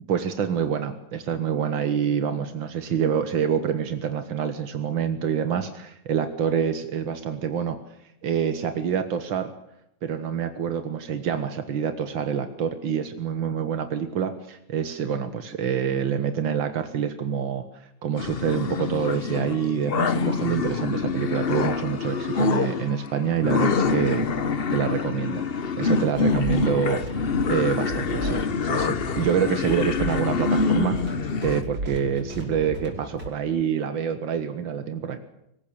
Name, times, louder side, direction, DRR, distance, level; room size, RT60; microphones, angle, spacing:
voice 1, 0.1-7.8 8.2-9.5 10.0-24.3 24.7-25.5 25.8-27.2 27.5-35.2, right 7 dB, 85° right, 8 dB, 2.1 m, -26 dB
sound 1, 18.2-31.6, left 5 dB, 40° left, 0.9 m, -26 dB
sound 2, 26.2-33.3, right 1 dB, 60° right, 5.9 m, -35 dB
25.0 x 16.0 x 8.7 m, 0.79 s
omnidirectional pair, 2.0 m